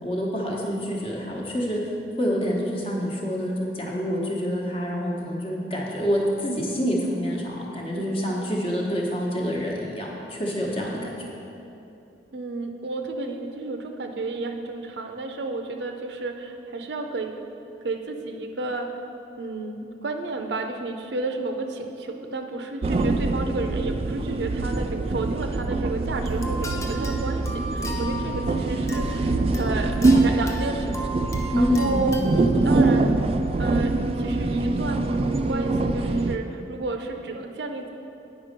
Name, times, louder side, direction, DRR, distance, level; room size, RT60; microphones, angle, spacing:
voice 1, 0.0-1.9 2.2-11.3 31.5-32.0, equal, 30° left, -2 dB, 1.1 m, -27 dB
voice 2, 7.9-8.4 10.9-11.3 12.3-17.3 17.8-19.0 19.4-31.0 31.6-32.2 32.6-33.1 33.6-37.9, right 3 dB, 70° right, 5 dB, 0.6 m, -32 dB
sound 1, 22.8-36.4, right 2 dB, 30° right, 0.3 m, -24 dB
sound 2, 26.1-32.4, equal, 15° left, 0.5 m, -37 dB
8.9 x 5.2 x 5.2 m, 2.8 s
head